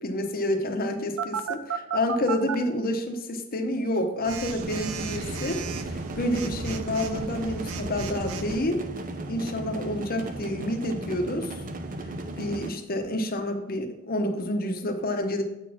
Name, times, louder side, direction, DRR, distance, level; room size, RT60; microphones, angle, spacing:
voice 1, 0.0-8.8 9.3-11.5 12.4-15.4, left 1 dB, 45° left, 5 dB, 0.9 m, -29 dB
Telephone, 1.2-2.5 4.2-8.6, right 6 dB, 80° right, 0.6 m, -34 dB
sound 1, 4.6-12.7, right 2 dB, 40° right, 0.6 m, -36 dB
8.1 x 4.2 x 5.9 m, 0.93 s
head